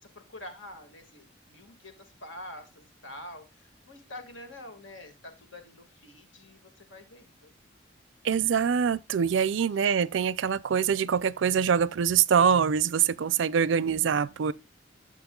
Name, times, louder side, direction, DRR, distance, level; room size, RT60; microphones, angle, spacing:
voice 1, 0.0-7.5 9.7-9.8, left 1 dB, 80° left, 1.9 m, -46 dB
voice 2, 8.2-14.5, right 7 dB, 75° right, 0.4 m, -24 dB
12.5 x 7.6 x 2.3 m
head